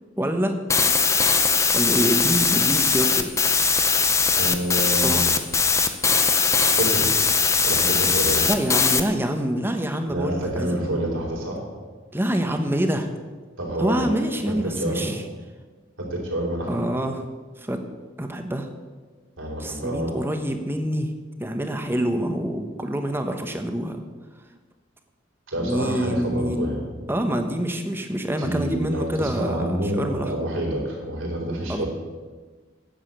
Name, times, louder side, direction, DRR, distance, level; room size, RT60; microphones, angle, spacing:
voice 1, 0.2-0.6 1.7-3.3 5.0-5.2 8.4-11.0 12.1-13.1 13.8-15.2 16.6-17.2 17.6-17.8 18.2-18.7 19.6-21.1 21.4-24.0 25.6-26.8 27.1-30.3 31.7-31.8, equal, 10° right, 6 dB, 1.0 m, -26 dB
sound 1, 0.7-9.0, left 5 dB, 15° left, 0.6 m, -20 dB
voice 2, 4.3-5.3 6.3-7.1 7.6-8.5 10.1-11.6 13.6-14.1 14.5-15.1 16.0-16.8 19.4-20.1 25.5-27.0 28.4-31.9, right 1 dB, 85° right, -1 dB, 3.8 m, -28 dB
10.0 x 7.3 x 8.5 m, 1.4 s
head